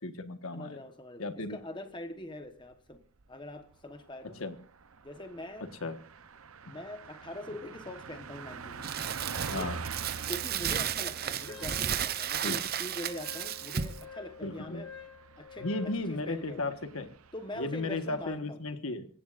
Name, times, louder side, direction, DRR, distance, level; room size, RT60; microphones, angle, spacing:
voice 1, 0.0-0.8 1.2-1.6 4.4-4.5 5.8-6.0 9.5-9.8 12.4-12.6 14.4-14.8 15.6-17.1 17.6-19.1, left 2 dB, 70° left, 8 dB, 1.5 m, -35 dB
voice 2, 0.5-3.0 3.3-4.4 5.0-5.7 6.6-8.9 9.5-9.7 10.3-14.9 15.4-16.8 17.3-18.6, left 1 dB, 20° left, 7 dB, 1.2 m, -43 dB
Car passing by, 2.7-3.3 3.7-3.8 4.1-18.4, right 5 dB, 75° right, 0.8 m, -46 dB
Crumpling crinkling, 8.8-14.0, right 9 dB, 45° right, 0.7 m, -33 dB
Wind instrument woodwind instrument, 11.5-16.0, left 8 dB, 55° left, 2.1 m, -48 dB
26.5 x 15.5 x 2.6 m, 0.43 s
head